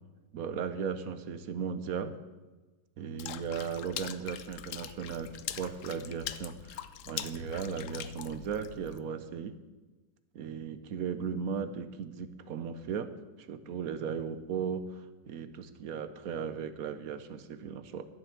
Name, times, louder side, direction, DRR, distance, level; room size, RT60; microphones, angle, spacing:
voice 1, 0.3-2.1 3.0-9.5 10.3-13.1 13.4-18.1, right 6 dB, 60° right, 12 dB, 1.1 m, -36 dB
Water / Splash splatter, 3.2-9.0, left 11 dB, 70° left, 0.7 m, -42 dB
12.5 x 7.8 x 7.4 m, 1.2 s
omnidirectional pair, 1.9 m